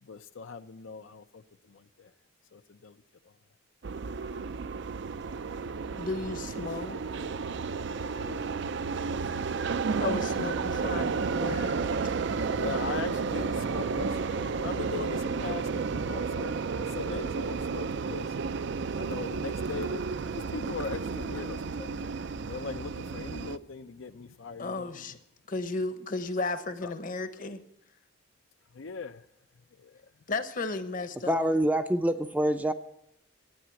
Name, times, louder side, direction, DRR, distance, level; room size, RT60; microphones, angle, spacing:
voice 1, 0.0-2.1 2.5-3.3 8.1-8.6 12.3-18.4 19.0-20.0 20.3-22.1 22.5-25.1 26.8-26.9 28.7-29.3 29.8-30.1, left 5 dB, 75° left, 0.6 m, -40 dB
sound 1, 3.8-23.6, right 5 dB, 60° right, 0.4 m, -32 dB
voice 2, 5.9-7.0 10.0-11.7 12.0-12.1 24.6-25.2 25.5-27.6 30.3-31.5, left 3 dB, 40° left, 0.9 m, -34 dB
voice 3, 31.3-32.7, right 1 dB, 10° right, 0.5 m, -26 dB
13.0 x 9.0 x 7.6 m
head